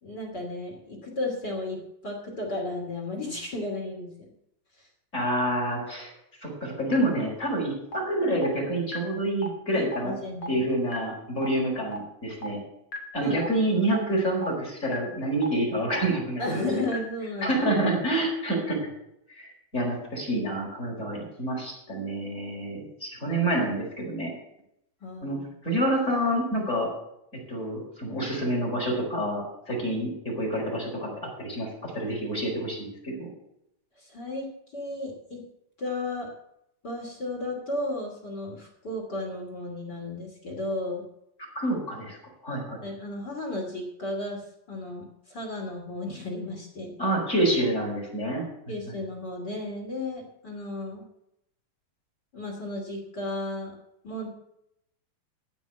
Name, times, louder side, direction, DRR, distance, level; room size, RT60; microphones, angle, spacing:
voice 1, 0.0-1.8 2.0-4.1 9.7-10.7 13.2-13.4 16.4-17.6 25.0-25.4 34.0-34.5 34.7-35.4 35.8-36.3 36.8-41.0 42.8-46.9 48.7-51.1 52.3-53.7 54.0-54.3, left 2 dB, 30° left, -2 dB, 1.9 m, -34 dB
voice 2, 5.1-6.1 6.4-10.1 10.5-12.6 13.1-16.6 17.4-18.8 19.3-19.5 19.7-24.3 25.2-25.4 25.6-26.9 27.5-31.1 31.4-33.3 41.5-42.2 42.4-42.8 47.0-48.4, right 1 dB, 15° left, 0 dB, 3.8 m, -27 dB
sound 1, 6.9-7.0 7.4-7.5 7.9-8.0 8.4-8.5 8.9-9.0 9.4-9.5 9.9-10.0 10.4-10.5 10.9-11.0 11.4-11.5 11.9-12.0 12.4-12.5 12.9-13.0 13.4-13.5 13.9-14.0 14.4-14.5 14.9-15.0 15.4-15.5 15.9-16.0 16.4-16.5 16.9-17.0 17.4-17.5, equal, 80° left, 1.1 m, -34 dB
14.5 x 5.8 x 8.3 m, 0.79 s
omnidirectional pair, 6.0 m